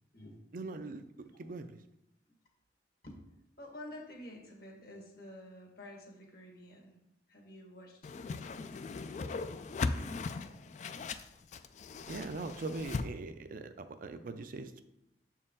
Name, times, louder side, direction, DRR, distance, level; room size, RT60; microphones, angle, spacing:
voice 1, 0.5-1.8 12.1-14.8, right 3 dB, 50° right, 9 dB, 0.4 m, -41 dB
voice 2, 3.6-7.0 7.3-8.6 10.0-10.2, left 1 dB, 60° left, 1 dB, 1.5 m, -50 dB
Whoosh swoosh swish, 8.0-13.0, left 4 dB, 40° left, 0.3 m, -38 dB
7.0 x 4.6 x 3.7 m, 0.85 s
head